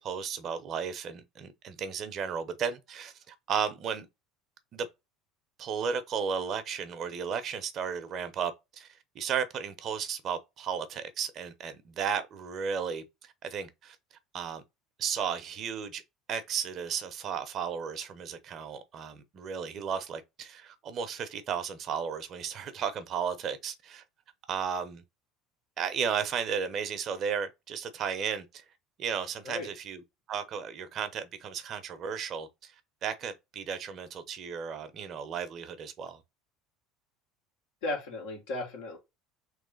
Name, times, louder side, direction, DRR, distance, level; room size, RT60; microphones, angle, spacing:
voice 1, 0.0-4.1 4.7-4.9 5.6-8.9 9.1-14.0 14.3-14.6 15.0-16.0 16.3-24.0 24.5-25.0 25.8-28.6 29.0-30.0 30.3-32.7 33.0-36.2, right 7 dB, 50° right, 0.8 m, -34 dB
voice 2, 37.8-39.0, left 2 dB, 75° left, 1.8 m, -35 dB
3.2 x 3.2 x 3.9 m
hypercardioid pair, 75°, 0 cm